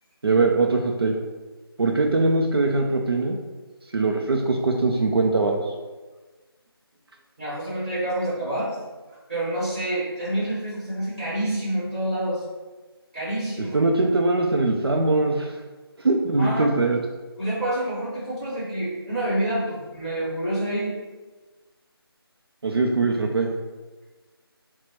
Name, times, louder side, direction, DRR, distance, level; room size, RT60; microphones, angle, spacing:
voice 1, 0.2-1.1 1.8-3.4 3.9-5.7 13.7-15.6 16.0-17.0 22.6-23.5, right 3 dB, 70° right, 1 dB, 0.5 m, -21 dB
voice 2, 7.4-8.7 9.3-12.4 13.1-13.8 16.4-16.7 17.4-21.0, right 1 dB, 15° right, -9 dB, 1.3 m, -27 dB
5.9 x 2.2 x 2.9 m, 1.3 s
figure-of-eight pair, 175°, 13 cm